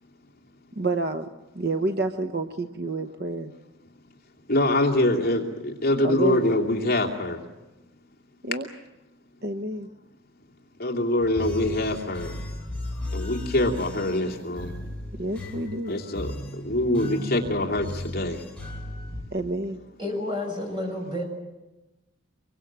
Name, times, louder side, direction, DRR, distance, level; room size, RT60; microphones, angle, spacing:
voice 1, 0.8-1.3 1.5-3.5 6.0-6.5 8.4-8.7 9.4-9.9 15.2-15.9 19.3-19.8, right 2 dB, 50° right, 7 dB, 0.9 m, -29 dB
voice 2, 4.5-7.4 10.8-12.3 13.1-14.7 15.9-16.3 16.6-18.4, left 1 dB, 45° left, 1 dB, 2.6 m, -24 dB
sound 1, 11.2-19.2, left 1 dB, 5° left, 3.3 m, -36 dB
voice 3, 20.0-21.3, left 1 dB, 20° right, 2 dB, 7.1 m, -30 dB
25.5 x 23.0 x 7.4 m, 1.0 s
head